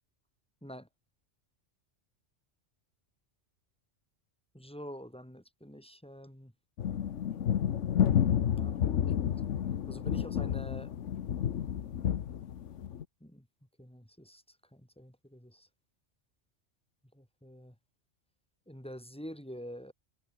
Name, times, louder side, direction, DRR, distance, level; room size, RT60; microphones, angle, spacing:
voice 1, 4.5-6.5 8.2-9.5 9.9-10.9 13.2-13.5 13.8-15.7 17.1-17.7 18.7-19.9, equal, 5° left, 4.5 m, -47 dB
sound 1, 6.8-13.0, left 9 dB, 80° left, 1.2 m, -30 dB
omnidirectional pair, 1.2 m